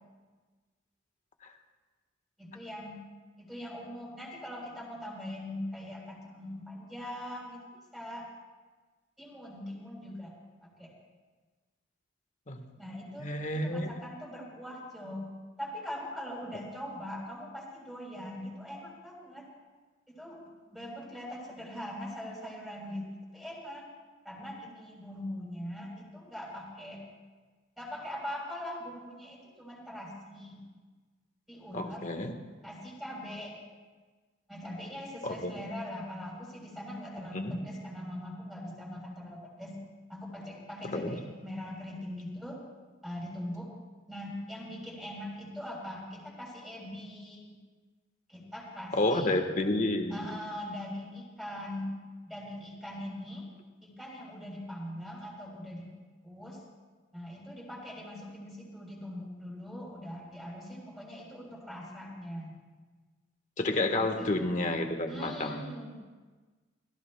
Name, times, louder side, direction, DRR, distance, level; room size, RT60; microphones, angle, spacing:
voice 1, 2.4-3.0 3.4-7.6 7.9-8.3 9.2-10.3 10.6-10.9 12.8-15.3 15.6-19.5 20.1-20.4 20.7-23.1 23.3-23.9 24.2-27.0 27.8-30.7 31.5-32.0 32.6-33.6 34.5-39.8 40.1-42.6 43.0-43.7 44.1-47.5 48.3-49.4 50.1-51.9 52.3-53.4 53.8-55.9 56.2-56.6 57.1-62.5 64.0-64.3 65.1-66.0, left 1 dB, ahead, -4 dB, 3.7 m, -41 dB
voice 2, 13.2-13.9 31.7-32.3 35.2-35.5 37.3-37.6 40.9-41.2 48.9-50.4 63.6-65.6, left 2 dB, 40° left, 5 dB, 1.3 m, -30 dB
29.0 x 16.5 x 2.2 m, 1.4 s
head